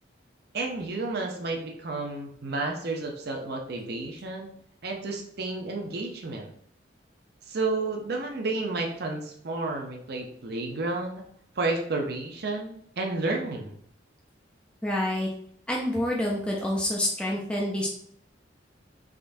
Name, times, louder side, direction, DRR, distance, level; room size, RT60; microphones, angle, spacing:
voice 1, 0.5-4.5 4.8-6.5 7.5-11.2 11.6-13.8, right 3 dB, 60° right, 1 dB, 0.7 m, -31 dB
voice 2, 14.8-15.3 15.7-17.9, left 1 dB, 5° left, -3 dB, 0.5 m, -27 dB
3.7 x 3.3 x 2.6 m, 0.64 s
head